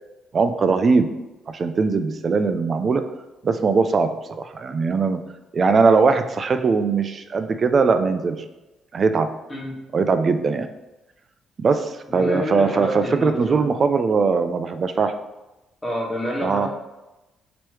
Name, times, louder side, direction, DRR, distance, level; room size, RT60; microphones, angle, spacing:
voice 1, 0.3-1.1 1.5-3.0 3.4-4.1 4.4-5.2 5.5-8.4 8.9-9.3 9.9-10.7 11.6-15.1 16.4-16.7, right 4 dB, 45° right, 9 dB, 0.4 m, -20 dB
voice 2, 12.1-13.6 15.8-16.7, left 1 dB, 15° left, -4 dB, 1.4 m, -28 dB
3.0 x 3.0 x 4.6 m, 1.0 s
cardioid pair, 90°, 0 cm